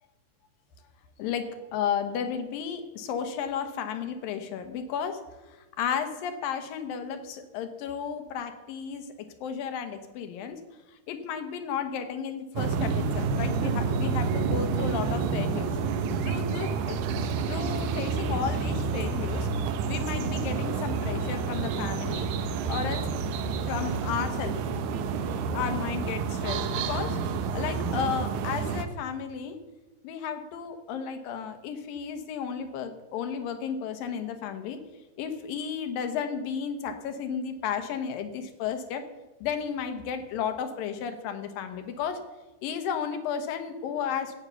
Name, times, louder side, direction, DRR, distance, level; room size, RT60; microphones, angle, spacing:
voice 1, 1.7-5.2 5.5-9.1 9.4-10.6 11.1-15.7 16.2-17.0 17.5-19.5 19.9-22.3 22.7-23.1 23.7-24.6 25.5-27.2 27.5-29.6 30.0-34.8 35.2-39.0 39.4-42.2 42.6-44.4, left 7 dB, 75° left, 8 dB, 2.8 m, -33 dB
sound 1, 12.6-28.9, right 5 dB, 70° right, 2.0 m, -29 dB
13.0 x 8.9 x 6.9 m, 1.2 s
omnidirectional pair, 4.1 m